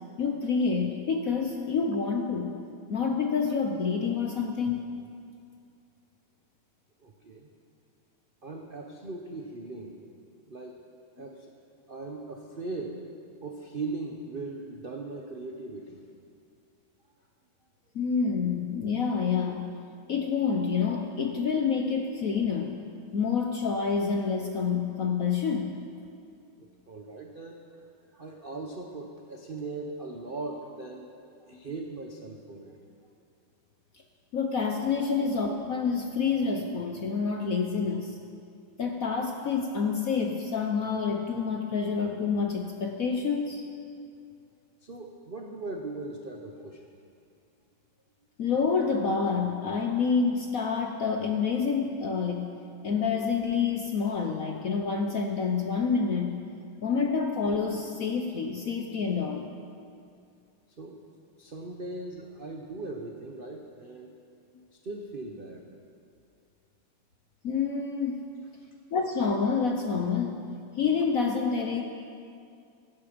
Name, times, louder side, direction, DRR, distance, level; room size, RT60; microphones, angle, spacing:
voice 1, 0.2-2.5 2.9-4.8 17.9-19.6 20.1-22.7 23.1-25.8 34.3-38.2 38.8-43.6 48.4-52.5 52.8-56.4 56.8-59.5 67.4-68.2 68.9-70.4 70.8-71.8, left 5 dB, 60° left, 3 dB, 0.9 m, -28 dB
voice 2, 7.0-7.5 8.4-10.0 10.5-10.8 11.2-11.5 11.9-13.0 13.4-16.1 26.6-27.6 28.1-31.1 31.4-32.8 44.8-46.9 60.8-61.0 61.4-64.1 64.8-65.7, right 3 dB, 85° right, 1 dB, 0.4 m, -39 dB
16.0 x 11.5 x 5.1 m, 2.4 s
omnidirectional pair, 2.4 m